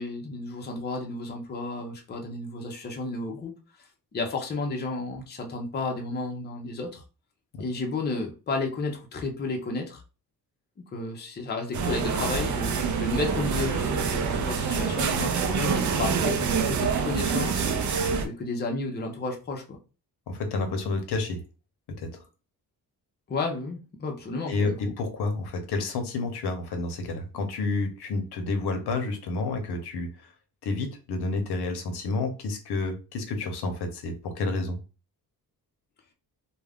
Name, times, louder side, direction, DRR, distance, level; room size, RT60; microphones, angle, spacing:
voice 1, 0.0-3.5 4.1-7.0 7.6-10.0 10.9-17.7 18.2-19.8 23.3-24.9, left 3 dB, 25° left, 1 dB, 0.5 m, -32 dB
sound 1, 11.7-18.3, right 6 dB, 50° right, 0.4 m, -26 dB
voice 2, 20.3-21.4 22.0-22.1 24.5-30.3 30.6-34.8, left 3 dB, 85° left, 5 dB, 0.8 m, -30 dB
2.3 x 2.1 x 3.4 m, 0.32 s
wide cardioid pair, 150°, 38 cm